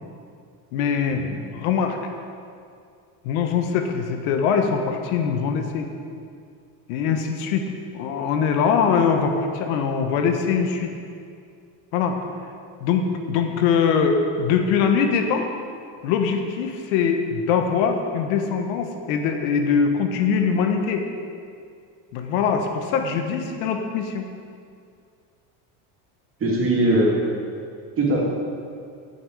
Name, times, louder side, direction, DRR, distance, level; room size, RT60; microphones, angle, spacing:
voice 1, 0.7-1.2 1.5-2.0 3.2-5.9 6.9-7.6 7.9-10.9 11.9-12.2 12.8-15.5 16.0-21.1 22.1-24.2, left 6 dB, 90° left, 5 dB, 1.4 m, -22 dB
voice 2, 26.4-27.1 28.0-28.2, right 1 dB, 30° right, -4 dB, 3.1 m, -20 dB
16.5 x 7.3 x 4.9 m, 2.3 s
cardioid pair, 135°, 41 cm